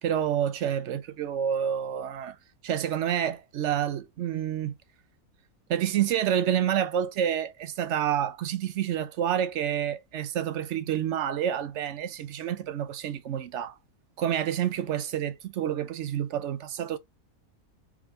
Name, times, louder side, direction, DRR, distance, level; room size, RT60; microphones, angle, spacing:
voice 1, 0.0-2.4 2.6-4.7 5.7-13.8 14.2-17.0, right 9 dB, 65° right, 0.7 m, -28 dB
3.6 x 3.6 x 3.1 m
omnidirectional pair, 1.6 m